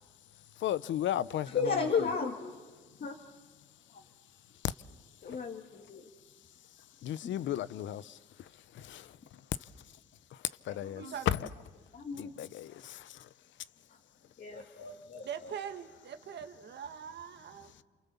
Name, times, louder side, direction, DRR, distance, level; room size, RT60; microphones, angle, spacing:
voice 1, 0.6-2.1 4.6-4.7 7.0-8.5 8.7-9.1 10.6-11.5 12.2-13.3, left 11 dB, 70° left, 0.8 m, -35 dB
voice 2, 1.5-2.5 3.0-3.1 5.2-6.0 11.0-11.1 11.9-12.3 14.4-15.3, left 5 dB, 50° left, 2.4 m, -33 dB
voice 3, 11.0-11.5 15.2-17.7, right 8 dB, 60° right, 1.7 m, -42 dB
30.0 x 27.5 x 7.2 m
cardioid pair, 90°, 20 cm